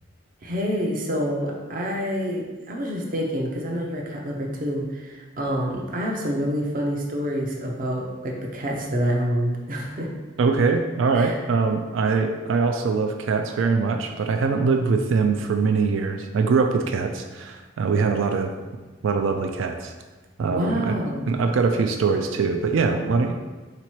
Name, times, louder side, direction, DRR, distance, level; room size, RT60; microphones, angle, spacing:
voice 1, 0.4-10.1 11.1-11.4 20.5-21.3, equal, 45° right, -1 dB, 0.6 m, -27 dB
voice 2, 10.4-18.5 19.0-19.9 20.4-21.0 21.3-23.3, right 4 dB, 90° right, 5 dB, 0.3 m, -22 dB
3.9 x 2.9 x 4.5 m, 1.3 s
head